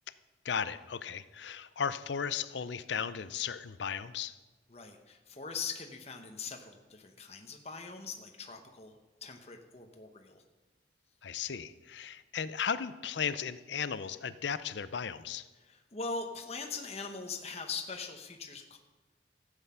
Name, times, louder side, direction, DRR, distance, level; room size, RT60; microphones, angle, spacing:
voice 1, 0.4-4.4 11.2-15.5, left 7 dB, 70° left, 14 dB, 0.5 m, -35 dB
voice 2, 4.7-10.4 15.6-18.8, left 4 dB, 35° left, 4 dB, 1.0 m, -41 dB
14.5 x 8.1 x 5.6 m, 1.2 s
head